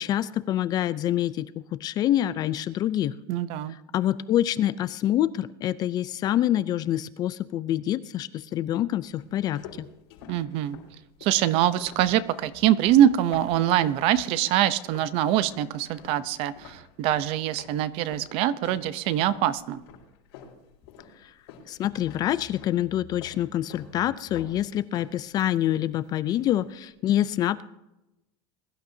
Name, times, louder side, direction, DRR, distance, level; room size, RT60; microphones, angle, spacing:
voice 1, 0.0-1.5 1.8-3.2 3.9-9.9 21.2-21.3 21.7-27.6, left 12 dB, 30° left, 14 dB, 0.4 m, -26 dB
voice 2, 3.3-3.8 10.3-10.8 11.2-19.8, right 11 dB, 45° right, 16 dB, 0.7 m, -24 dB
sound 1, 9.2-14.1 14.4-15.1 15.4-21.7 22.0-22.8 23.2-23.9 24.2-26.1 26.4-26.7, left 6 dB, 90° left, 4.9 m, -48 dB
21.5 x 11.5 x 2.7 m, 0.94 s
supercardioid pair, 165°, 13 cm